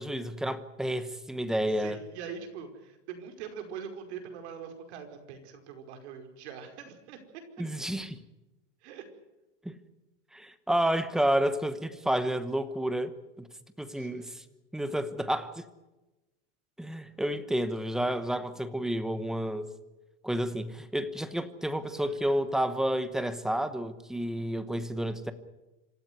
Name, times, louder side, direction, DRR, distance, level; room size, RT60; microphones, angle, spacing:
voice 1, 0.0-2.0 7.6-8.2 9.6-9.7 10.3-13.5 13.8-14.4 14.7-15.6 16.8-19.7 20.2-25.3, right 1 dB, ahead, 11 dB, 1.0 m, -30 dB
voice 2, 1.7-7.2 8.8-9.0 13.9-14.4 21.7-22.4, right 7 dB, 60° right, 5 dB, 5.2 m, -43 dB
26.5 x 14.5 x 9.5 m, 1.0 s
supercardioid pair, 165°, 38 cm